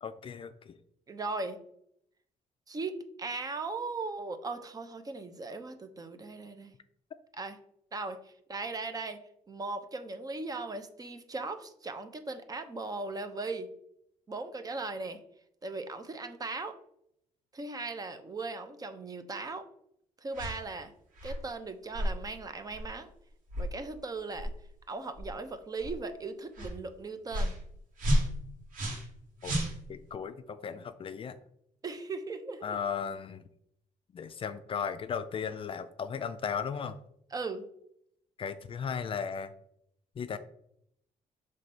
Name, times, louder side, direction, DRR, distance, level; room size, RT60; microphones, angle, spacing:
voice 1, 0.0-0.8 29.4-29.6 29.9-31.4 32.6-33.4 34.1-37.0 38.4-39.5 40.2-40.4, left 6 dB, 40° left, 11 dB, 0.4 m, -36 dB
voice 2, 1.1-1.6 2.7-6.7 7.4-7.6 7.9-9.2 9.5-13.7 14.3-15.2 15.6-16.8 17.5-19.7 20.2-20.9 21.2-23.1 23.6-24.5 24.9-27.6 31.8-32.8 37.3-37.7, right 3 dB, 25° right, 9 dB, 0.7 m, -38 dB
sound 1, 20.3-20.6 21.2-21.4 21.9-22.1 22.7-22.9 23.5-23.7 24.3-24.5 25.2-25.3 25.8-26.0 26.5-26.7 27.3-27.6 28.0-29.1 29.4-30.1, equal, 80° right, 2.0 m, -31 dB
5.9 x 3.3 x 5.3 m, 0.74 s
cardioid pair, 120°, 14 cm